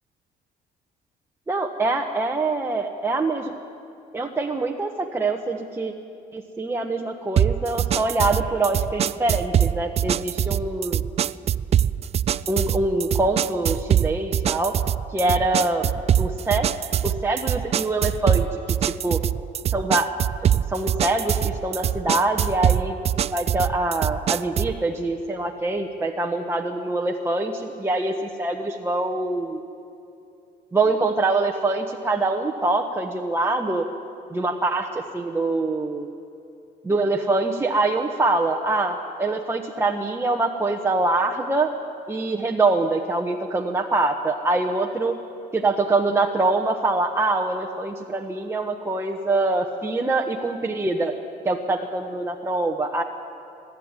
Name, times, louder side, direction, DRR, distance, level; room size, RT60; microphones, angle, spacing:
voice 1, 1.5-3.5 4.1-5.9 6.3-11.0 12.5-14.7 15.1-15.9 16.2-16.7 17.0-19.2 19.7-20.1 20.4-22.9 23.3-29.6 30.7-33.8 34.3-36.1 36.8-41.7 42.1-45.1 45.5-51.1 51.4-53.0, right 2 dB, 15° right, 1 dB, 1.2 m, -24 dB
sound 1, 7.4-24.8, right 10 dB, 40° right, 0.4 m, -23 dB
23.5 x 12.5 x 9.7 m, 2.7 s
cardioid pair, 110°, 17 cm